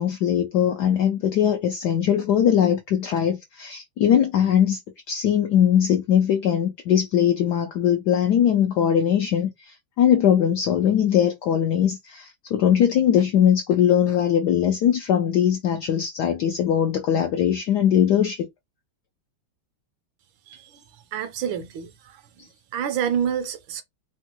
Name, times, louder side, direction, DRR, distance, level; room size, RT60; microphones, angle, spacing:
voice 1, 0.0-4.8 5.1-18.4, left 9 dB, 80° left, 0.9 m, -21 dB
voice 2, 20.5-20.8 21.1-22.5 22.7-23.8, right 8 dB, 75° right, 1.3 m, -28 dB
3.5 x 2.2 x 2.9 m
omnidirectional pair, 2.3 m